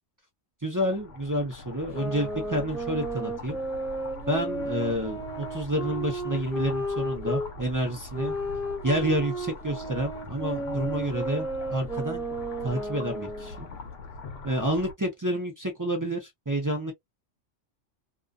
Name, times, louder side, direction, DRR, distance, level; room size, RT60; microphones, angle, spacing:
voice 1, 0.6-3.6 4.3-8.3 8.8-12.2 12.6-13.7 14.4-16.9, right 1 dB, 25° right, 0.5 m, -29 dB
sound 1, 0.8-14.9, left 3 dB, 65° left, 0.8 m, -43 dB
sound 2, 1.9-7.5 8.1-13.6, right 1 dB, ahead, 1.0 m, -33 dB
2.4 x 2.3 x 2.4 m
omnidirectional pair, 1.3 m